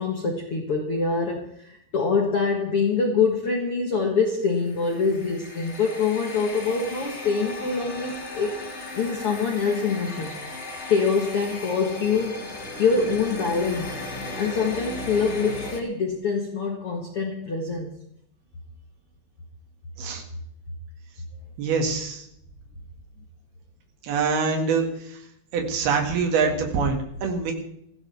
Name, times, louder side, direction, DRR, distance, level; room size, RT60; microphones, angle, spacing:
voice 1, 0.0-8.6 8.9-10.4 10.9-12.4 12.8-14.0 14.4-18.0, left 5 dB, 80° left, 1 dB, 1.2 m, -25 dB
sound 1, 4.5-15.8, left 2 dB, 35° left, 1.1 m, -36 dB
voice 2, 21.6-22.2 24.0-24.9 25.5-27.5, right 5 dB, 65° right, 3 dB, 3.9 m, -24 dB
20.5 x 15.5 x 3.5 m, 0.74 s
omnidirectional pair, 5.0 m